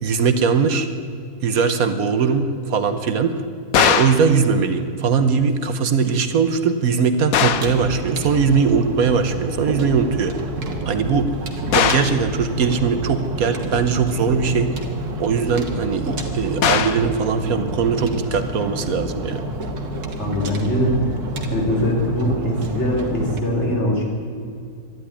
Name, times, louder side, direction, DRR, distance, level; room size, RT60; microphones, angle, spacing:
voice 1, 0.0-0.9 1.4-3.4 3.7-10.3 10.8-11.3 11.7-14.7 15.2-19.4, right 5 dB, 70° right, 9 dB, 1.4 m, -20 dB
sound 1, 3.7-4.3 7.3-7.8 11.7-12.2 16.6-17.1, left 9 dB, 70° left, 1.2 m, -19 dB
sound 2, 7.3-23.4, right 1 dB, 85° right, 2.1 m, -29 dB
voice 2, 20.2-21.1 21.5-24.0, equal, 45° left, -1 dB, 3.8 m, -21 dB
12.5 x 12.0 x 9.7 m, 2.3 s
omnidirectional pair, 1.6 m